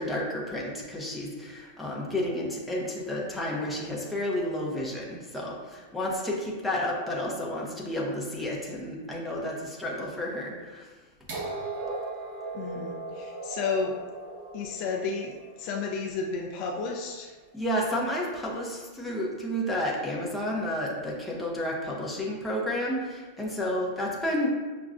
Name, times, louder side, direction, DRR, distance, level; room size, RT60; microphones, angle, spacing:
voice 1, 0.0-10.9 17.5-24.5, left 1 dB, 5° left, -4 dB, 0.6 m, -31 dB
sound 1, 11.3-17.1 18.3-18.4, right 3 dB, 50° right, 1.1 m, -38 dB
voice 2, 12.5-13.9 14.5-17.3, left 4 dB, 45° left, 1 dB, 0.4 m, -32 dB
6.0 x 2.2 x 2.5 m, 1.3 s
supercardioid pair, 155°, 0 cm